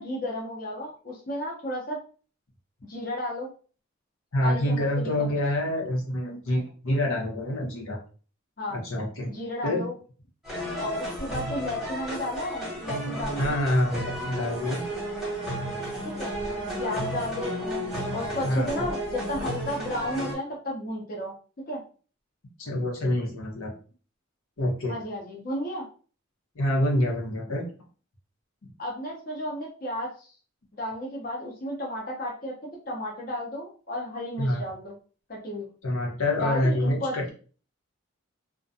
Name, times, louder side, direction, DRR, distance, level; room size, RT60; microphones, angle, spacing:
voice 1, 0.0-2.0 2.8-3.5 4.4-5.3 8.6-8.8 9.3-9.9 10.8-13.5 16.0-16.3 16.8-21.3 21.7-21.8 24.9-25.8 28.8-30.3 30.7-34.9 35.3-35.7 36.4-37.3, left 1 dB, 45° left, -2 dB, 0.6 m, -33 dB
voice 2, 4.3-8.0 8.7-9.3 9.6-9.9 13.4-14.8 18.4-18.9 22.6-23.7 24.6-24.9 26.5-27.6 34.4-34.6 35.8-37.3, left 1 dB, 80° left, -1 dB, 0.8 m, -26 dB
sound 1, 10.4-20.3, equal, ahead, 0.9 m, -33 dB
2.4 x 2.1 x 2.6 m, 0.38 s
head